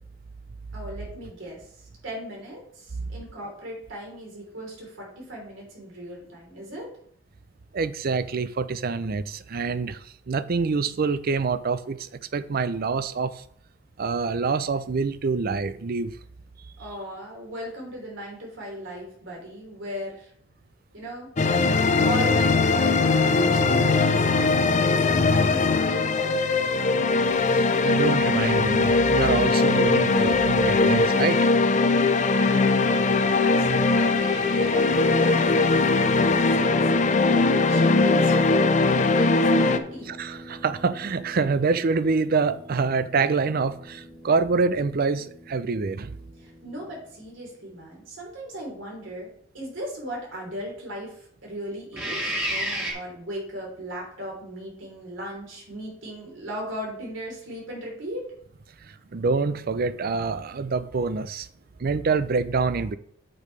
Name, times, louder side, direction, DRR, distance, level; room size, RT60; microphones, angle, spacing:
voice 1, 0.7-1.6 2.0-6.9 16.8-20.3 20.9-21.3 22.0-25.6 25.9-26.6 32.5-37.0 37.4-40.1 46.4-49.3 49.5-52.2 52.5-58.3, equal, 85° right, 3.5 m, -37 dB
voice 2, 7.7-10.0 10.3-12.0 12.3-13.3 14.0-16.1 27.5-31.5 40.1-46.1 59.1-61.5 61.8-63.0, right 4 dB, 50° right, 0.5 m, -26 dB
sound 1, 21.4-39.8, left 3 dB, 40° left, 0.5 m, -20 dB
sound 2, 34.1-47.2 51.9-52.9, equal, 10° right, 2.6 m, -37 dB
8.6 x 6.7 x 3.2 m
head